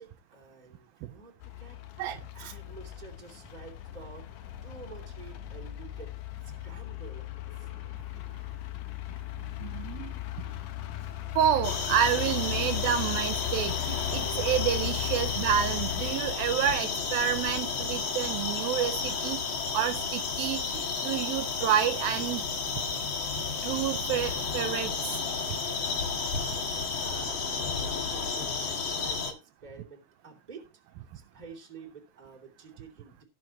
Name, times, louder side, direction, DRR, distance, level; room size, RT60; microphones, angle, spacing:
voice 1, 0.0-2.0 2.3-4.3 4.6-6.1 6.6-7.7 26.9-30.7 31.1-33.2, right 5 dB, 15° right, 2.2 m, -49 dB
sound 1, 1.4-16.2, left 15 dB, 70° left, 2.2 m, -37 dB
voice 2, 2.0-2.5 9.6-10.1 11.4-19.4 19.7-22.4 23.6-24.9, right 10 dB, 80° right, 2.6 m, -29 dB
sound 2, 11.6-29.3, left 5 dB, 50° left, 1.6 m, -32 dB
18.5 x 6.3 x 3.0 m
omnidirectional pair, 4.3 m